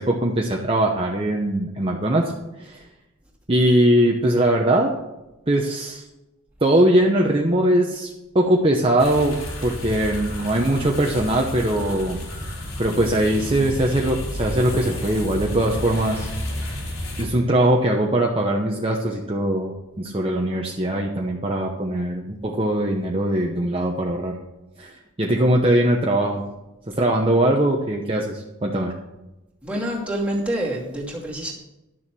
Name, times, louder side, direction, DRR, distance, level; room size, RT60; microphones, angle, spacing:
voice 1, 0.0-2.3 2.6-2.8 3.5-4.9 5.5-6.0 6.6-9.4 9.6-12.2 12.8-16.3 17.2-24.4 24.8-26.4 26.9-28.9, right 1 dB, 25° right, 0 dB, 0.9 m, -21 dB
sound 1, 9.0-17.3, left 1 dB, 75° left, 3.5 m, -31 dB
voice 2, 29.6-31.5, right 1 dB, 5° right, -4 dB, 2.5 m, -27 dB
12.0 x 7.1 x 6.2 m, 0.99 s
head